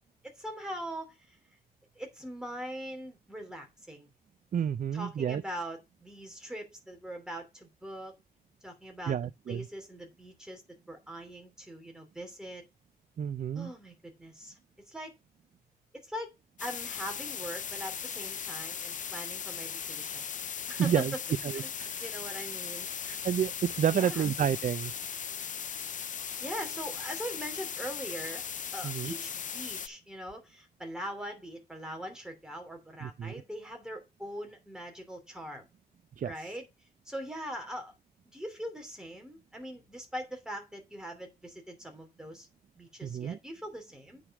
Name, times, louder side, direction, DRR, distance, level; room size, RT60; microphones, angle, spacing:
voice 1, 0.2-1.4 1.9-4.1 4.9-8.1 8.6-9.2 9.5-10.6 10.9-12.6 13.5-14.5 14.9-15.1 16.0-16.3 16.6-20.2 20.7-21.1 21.5-21.7 22.0-22.9 23.9-24.3 26.4-28.4 28.7-35.7 36.2-36.7 37.1-37.9 38.3-42.5 42.8-44.2, equal, 5° right, 2.8 m, -41 dB
voice 2, 4.5-5.4 9.1-9.7 13.2-13.7 20.8-21.1 21.4-21.9 23.1-24.9 28.8-29.1 33.0-33.4 36.2-36.5 43.0-43.4, right 8 dB, 55° right, 0.4 m, -30 dB
sound 1, 16.6-29.9, left 7 dB, 50° left, 0.5 m, -38 dB
8.7 x 5.0 x 5.9 m
wide cardioid pair, 135°, 16 cm